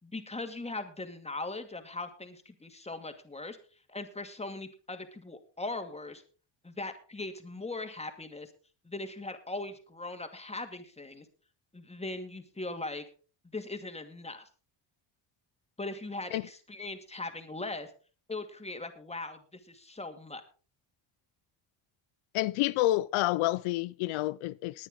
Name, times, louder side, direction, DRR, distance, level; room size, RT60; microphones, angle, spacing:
voice 1, 0.0-3.6 3.9-6.2 6.6-8.5 8.8-11.3 11.7-13.0 13.5-14.5 15.8-17.9 18.3-20.4, left 2 dB, 15° left, 2.4 m, -39 dB
voice 2, 22.3-24.9, left 17 dB, 85° left, 0.6 m, -29 dB
19.5 x 9.8 x 3.8 m
cardioid pair, 100°, 48 cm